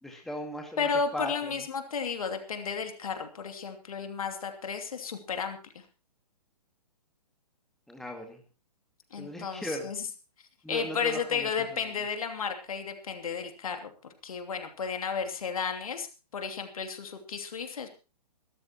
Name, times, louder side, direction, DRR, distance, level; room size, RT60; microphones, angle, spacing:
voice 1, 0.0-1.5 7.9-8.4 9.2-9.9 10.6-11.8, left 1 dB, ahead, 2 dB, 2.1 m, -38 dB
voice 2, 0.8-5.8 9.1-10.0 10.7-13.9 14.2-16.1 16.3-17.9, left 6 dB, 60° left, 6 dB, 2.7 m, -33 dB
23.5 x 13.5 x 3.0 m, 0.33 s
figure-of-eight pair, 125°, 20 cm